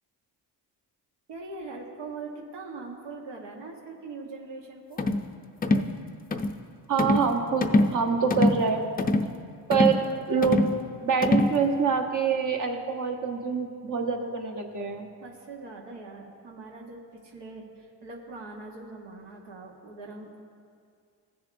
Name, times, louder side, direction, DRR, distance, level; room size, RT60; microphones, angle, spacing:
voice 1, 1.3-5.0 15.2-20.4, right 3 dB, 80° right, 0 dB, 1.3 m, -42 dB
sound 1, 5.0-5.3 5.6-5.9 6.3-6.6 7.0-7.3 7.6-8.0 8.3-8.6 9.0-9.3 9.7-10.0 10.4-10.8 11.2-11.6, left 2 dB, 20° left, 0.4 m, -23 dB
voice 2, 6.9-8.8 9.7-10.7 11.0-15.1, right 6 dB, 45° right, 3 dB, 1.1 m, -26 dB
16.0 x 6.9 x 2.6 m, 2.2 s
cardioid pair, 90°, 41 cm